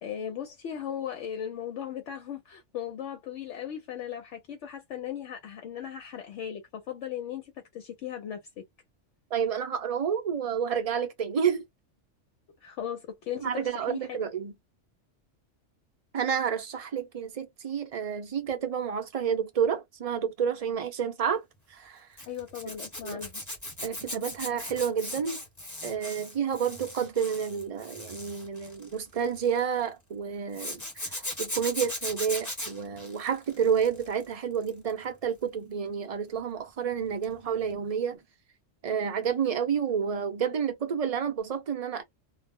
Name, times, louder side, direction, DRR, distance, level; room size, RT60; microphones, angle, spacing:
voice 1, 0.0-8.4 12.6-14.3 22.3-23.4, left 9 dB, 70° left, 0.9 m, -37 dB
voice 2, 9.3-11.6 13.4-14.5 16.1-21.4 21.7-22.1 23.0-23.2 23.8-25.4 25.8-38.2 38.8-42.0, right 7 dB, 40° right, 0.6 m, -30 dB
Zipper (clothing), 22.2-29.6 30.5-34.2 34.5-34.9 37.2-37.4 37.6-37.7, left 1 dB, 15° left, 0.9 m, -38 dB
2.4 x 2.0 x 3.5 m
omnidirectional pair, 1.3 m